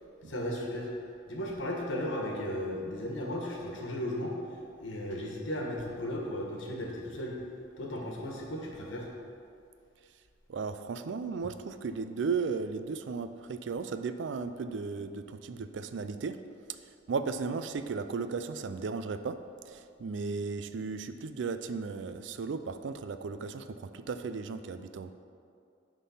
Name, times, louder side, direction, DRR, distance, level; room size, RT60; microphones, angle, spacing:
voice 1, 0.2-0.9 1.3-7.4 7.8-9.1, left 1 dB, 90° left, -1 dB, 1.4 m, -35 dB
voice 2, 10.5-16.4 16.7-19.4 19.6-25.1, right 5 dB, 70° right, 10 dB, 0.4 m, -35 dB
10.0 x 3.7 x 5.5 m, 2.4 s
head